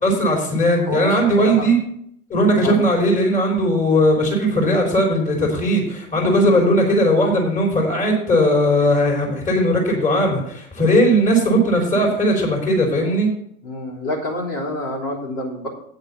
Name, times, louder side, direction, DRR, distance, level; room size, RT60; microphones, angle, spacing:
voice 1, 0.0-1.8 2.3-13.3, equal, 15° left, 0 dB, 3.4 m, -18 dB
voice 2, 0.9-1.7 2.6-2.8 6.4-6.6 11.3-11.5 13.6-15.7, left 1 dB, 50° left, -4 dB, 3.5 m, -28 dB
8.9 x 6.6 x 6.9 m, 0.70 s
figure-of-eight pair, 85°, 43 cm